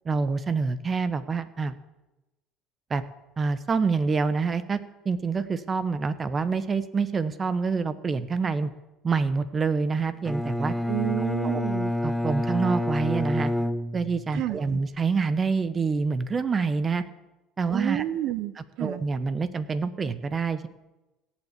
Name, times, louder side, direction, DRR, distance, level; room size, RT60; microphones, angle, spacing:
voice 1, 0.0-1.7 2.9-3.0 3.4-8.7 9.0-10.7 11.4-11.6 12.0-13.5 13.9-17.0 17.6-18.0 18.8-20.7, right 4 dB, 25° right, 13 dB, 1.1 m, -26 dB
Bowed string instrument, 10.2-14.4, left 1 dB, 5° left, 0.5 m, -28 dB
voice 2, 10.9-11.9 14.3-14.8 17.7-19.0, right 14 dB, 65° right, 15 dB, 0.8 m, -30 dB
17.5 x 7.4 x 8.3 m, 1.0 s
supercardioid pair, 115°, 0 cm